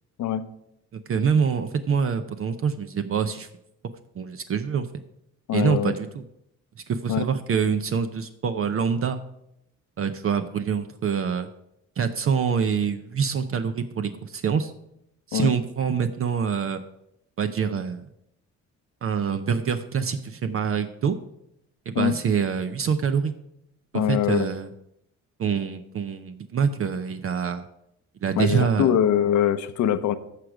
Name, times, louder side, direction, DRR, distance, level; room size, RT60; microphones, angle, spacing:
voice 1, 1.1-3.5 4.2-4.9 5.5-6.2 6.9-9.2 10.0-11.5 12.0-14.7 15.3-16.8 17.4-18.0 19.0-21.2 21.9-23.3 23.9-24.7 25.4-27.6 28.2-28.9, right 6 dB, 45° right, 9 dB, 0.7 m, -25 dB
voice 2, 5.5-5.9 7.1-7.3 15.3-15.5 21.9-22.2 23.9-24.5 28.4-30.2, left 9 dB, 75° left, 12 dB, 0.8 m, -23 dB
14.0 x 5.0 x 4.8 m, 0.80 s
cardioid pair, 90°, 30 cm